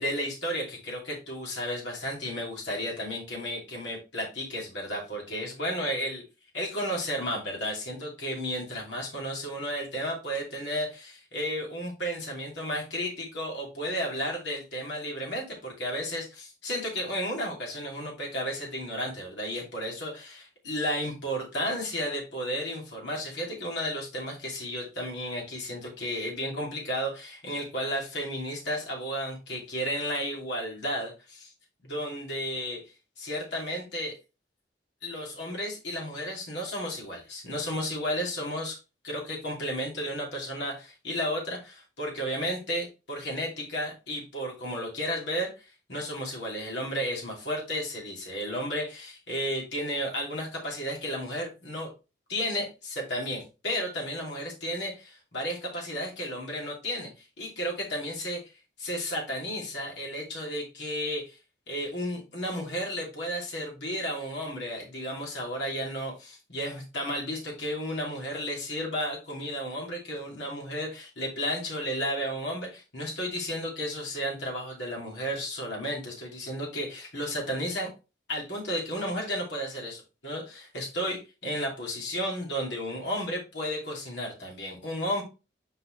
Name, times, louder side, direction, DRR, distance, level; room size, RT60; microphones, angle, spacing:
voice 1, 0.0-6.2 6.5-31.5 31.8-32.8 33.2-34.2 35.0-38.8 39.0-51.9 52.3-58.4 58.8-61.4 61.7-77.9 78.3-85.2, equal, 85° left, -1 dB, 2.9 m, -33 dB
6.0 x 5.3 x 3.3 m, 0.29 s
head